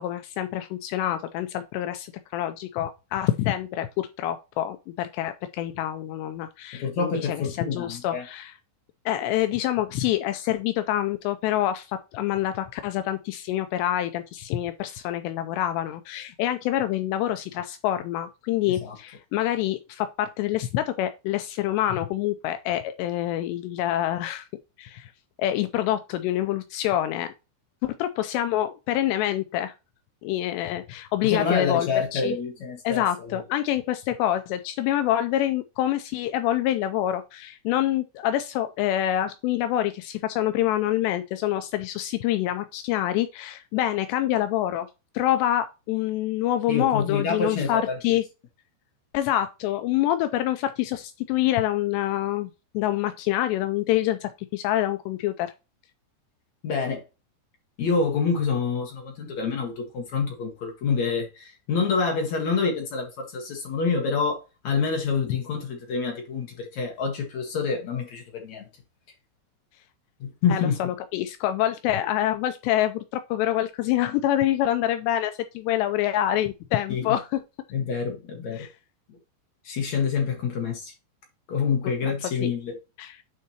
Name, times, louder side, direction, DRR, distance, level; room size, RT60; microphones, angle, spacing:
voice 1, 0.0-8.5 9.1-24.5 24.8-25.1 25.4-27.3 27.8-29.7 30.2-32.3 32.8-44.9 45.1-48.2 49.1-55.5 70.5-77.4 78.5-78.7 82.4-82.5 83.0-83.2, left 13 dB, 85° left, 2.5 m, -26 dB
voice 2, 6.7-8.3 18.8-18.9 31.2-33.4 46.7-48.0 56.6-57.0 57.8-68.7 70.2-70.9 76.9-77.1 77.7-78.7 79.1-79.2 79.6-80.9 81.5-82.7, left 5 dB, 60° left, 2.0 m, -27 dB
9.5 x 4.6 x 2.9 m
omnidirectional pair, 5.5 m